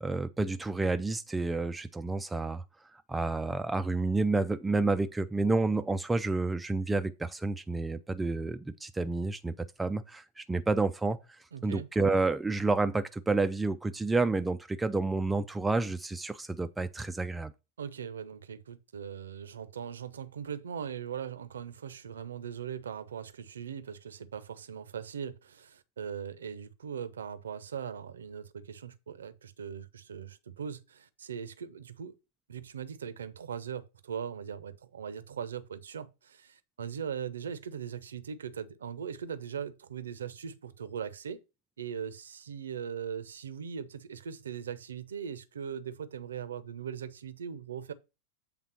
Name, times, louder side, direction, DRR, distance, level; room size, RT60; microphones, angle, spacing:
voice 1, 0.0-2.6 2.9-9.5 9.8-17.5, right 3 dB, 10° right, 0.4 m, -30 dB
voice 2, 11.5-11.9 17.8-32.1 32.5-41.4 41.8-47.9, right 7 dB, 65° right, 0.7 m, -40 dB
7.9 x 3.6 x 5.6 m
figure-of-eight pair, 90°, 0 cm